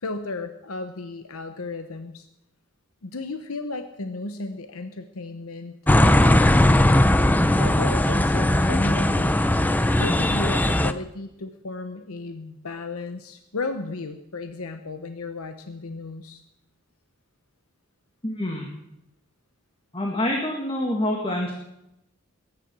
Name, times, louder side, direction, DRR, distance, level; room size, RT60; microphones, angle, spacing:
voice 1, 0.0-2.3 3.0-6.6 7.6-9.4 10.0-16.4, left 3 dB, 85° left, 8 dB, 1.0 m, -34 dB
sound 1, 5.9-10.9, left 1 dB, 10° left, 0.5 m, -19 dB
voice 2, 18.2-18.7 19.9-21.5, left 1 dB, 25° left, 1 dB, 1.9 m, -26 dB
21.0 x 10.0 x 6.1 m, 0.86 s
head